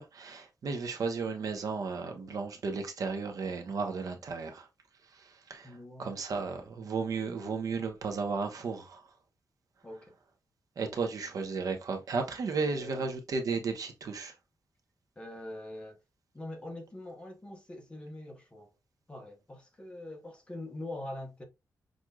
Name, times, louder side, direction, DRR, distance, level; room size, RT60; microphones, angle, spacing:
voice 1, 0.0-4.7 5.1-5.7 6.0-9.1 10.8-14.3, right 4 dB, 60° right, 0.8 m, -34 dB
voice 2, 5.6-6.1 6.6-6.7 7.0-7.1 9.8-10.2 10.8-11.1 12.5-13.1 15.2-16.0 16.3-18.7 19.1-21.4, left 1 dB, 15° left, 1.0 m, -44 dB
6.1 x 2.6 x 2.3 m
wide cardioid pair, 175°, 7 cm